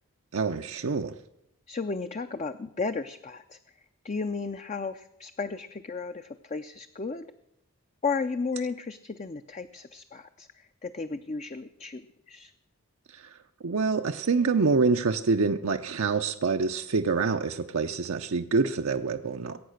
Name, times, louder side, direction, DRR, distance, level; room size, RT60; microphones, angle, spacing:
voice 1, 0.3-1.2 13.1-13.4 13.6-19.6, right 4 dB, 65° right, 0.6 m, -26 dB
voice 2, 1.7-3.6 4.0-7.3 8.0-12.5, left 4 dB, 30° left, 0.5 m, -34 dB
sound 1, 13.7-17.3, right 1 dB, 65° left, 2.8 m, -55 dB
21.0 x 8.8 x 6.4 m
head